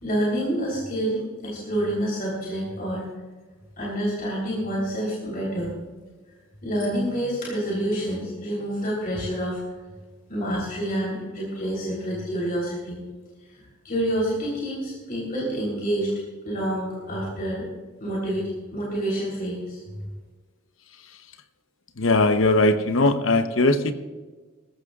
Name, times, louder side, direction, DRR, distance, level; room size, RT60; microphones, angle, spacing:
voice 1, 0.0-3.0 3.8-5.7 6.6-9.6 10.3-13.0 13.8-16.1 16.5-17.6 18.0-19.8, right 1 dB, 45° left, -5 dB, 3.7 m, -28 dB
voice 2, 22.0-23.9, left 2 dB, 85° left, 9 dB, 0.9 m, -19 dB
21.5 x 14.0 x 2.5 m, 1.3 s
head